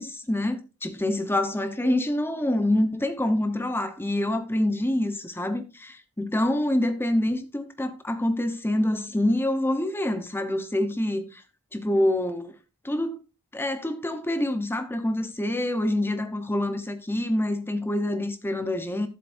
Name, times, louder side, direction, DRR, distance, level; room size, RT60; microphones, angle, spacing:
voice 1, 0.0-11.4 11.7-12.5 12.8-13.2 13.5-19.1, left 1 dB, 10° left, 1.0 m, -26 dB
12.5 x 7.8 x 2.6 m
head